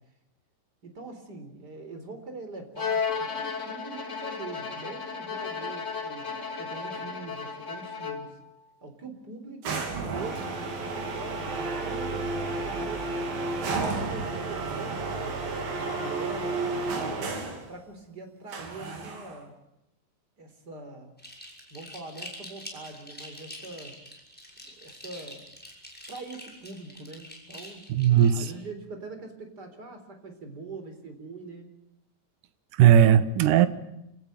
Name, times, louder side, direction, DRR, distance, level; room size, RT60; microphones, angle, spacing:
voice 1, 0.8-3.1 3.3-6.3 6.6-8.4 8.8-12.2 12.6-15.4 15.8-19.5 20.4-21.1 21.7-24.0 24.6-25.4 26.1-31.7, right 3 dB, 25° right, 6 dB, 3.9 m, -43 dB
Bowed string instrument, 2.8-8.5, left 5 dB, 65° left, 0.7 m, -34 dB
sound 1, 9.6-17.7 18.5-19.4, right 3 dB, 55° right, 4.8 m, -32 dB
sound 2, 21.2-28.5, equal, ahead, 5.5 m, -45 dB
voice 2, 27.9-28.4 32.8-33.7, right 10 dB, 70° right, 12 dB, 2.0 m, -17 dB
28.0 x 18.0 x 9.1 m, 0.86 s
omnidirectional pair, 5.2 m